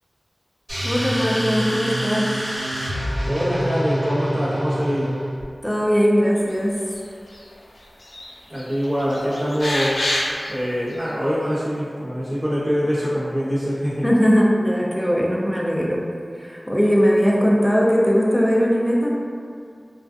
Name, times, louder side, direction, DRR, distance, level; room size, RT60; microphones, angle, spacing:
sound 1, 0.7-5.4, equal, 55° right, 1.4 m, -26 dB
voice 1, 0.8-2.3 5.6-6.8 14.0-16.0 16.4-19.1, equal, ahead, -4 dB, 0.4 m, -19 dB
voice 2, 3.3-5.1 8.5-10.0 10.5-14.1, equal, 35° right, -11 dB, 0.9 m, -24 dB
sound 2, 6.9-7.5 7.8-8.3 8.5-10.5 11.0-11.1, left 1 dB, 70° left, 0.4 m, -27 dB
2.3 x 2.3 x 2.4 m, 2.2 s
wide cardioid pair, 60°, 0 cm